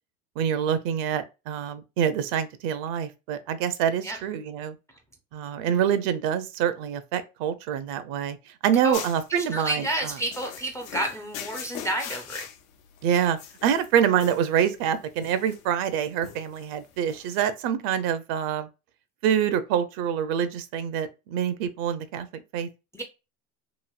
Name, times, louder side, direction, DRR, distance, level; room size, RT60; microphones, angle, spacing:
voice 1, 0.4-4.7 5.3-8.4 8.6-9.8 13.0-18.7 19.2-22.7, right 8 dB, 60° right, 0.6 m, -26 dB
sound 1, 8.9-17.4, left 9 dB, 85° left, 0.6 m, -42 dB
voice 2, 9.3-12.5 22.9-23.0, right 1 dB, 10° left, 0.3 m, -30 dB
3.0 x 2.5 x 2.3 m
supercardioid pair, 110°, 40 cm